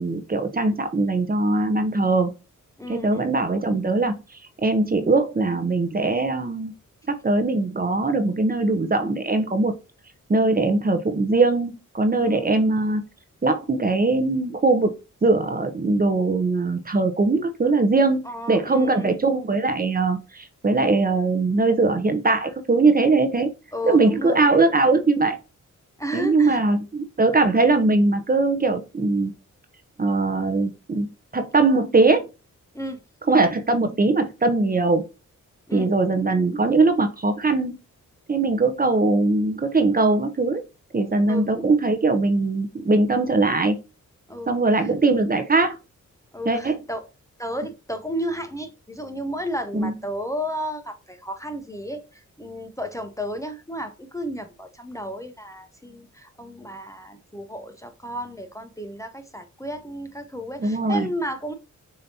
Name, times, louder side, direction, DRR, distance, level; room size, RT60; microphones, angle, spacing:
voice 1, 0.0-2.3 2.9-4.1 4.6-6.7 7.1-9.7 10.3-13.0 13.4-15.0 15.2-23.5 23.9-25.4 26.1-29.3 30.0-32.3 33.3-35.0 35.7-37.8 38.3-40.6 40.9-43.8 44.5-45.8 46.5-46.8 49.7-49.9 60.6-61.1, right 3 dB, 30° right, 0.7 m, -21 dB
voice 2, 2.8-3.3 12.2-12.5 18.2-19.2 23.7-24.6 26.0-26.6 32.7-33.0 35.7-35.9 41.3-41.5 44.3-44.5 44.7-44.9 46.3-47.1 47.4-61.5, equal, 10° left, 0.6 m, -33 dB
6.7 x 2.8 x 2.8 m
cardioid pair, 65°, 31 cm